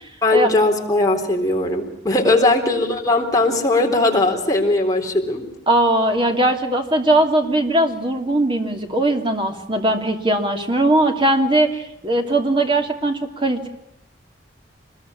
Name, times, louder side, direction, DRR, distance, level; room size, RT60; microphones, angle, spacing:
voice 1, 0.2-5.4, left 2 dB, 20° left, 1 dB, 3.8 m, -19 dB
voice 2, 5.7-13.7, right 1 dB, 25° right, 4 dB, 2.9 m, -19 dB
25.5 x 21.5 x 9.9 m, 0.77 s
head